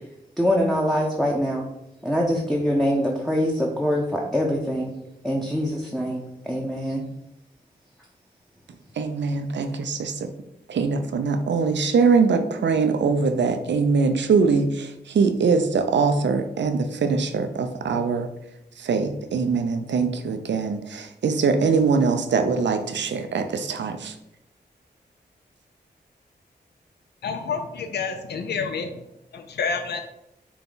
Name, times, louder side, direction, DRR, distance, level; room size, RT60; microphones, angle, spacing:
voice 1, 0.4-1.7 2.0-4.9 5.2-7.0, equal, ahead, -2 dB, 0.8 m, -24 dB
voice 2, 9.0-10.3 10.7-18.3 18.8-24.1, right 5 dB, 85° right, 8 dB, 0.5 m, -22 dB
voice 3, 27.2-29.0 29.3-30.0, left 5 dB, 70° left, 7 dB, 0.4 m, -29 dB
5.8 x 2.2 x 3.8 m, 0.84 s
cardioid pair, 45°, 18 cm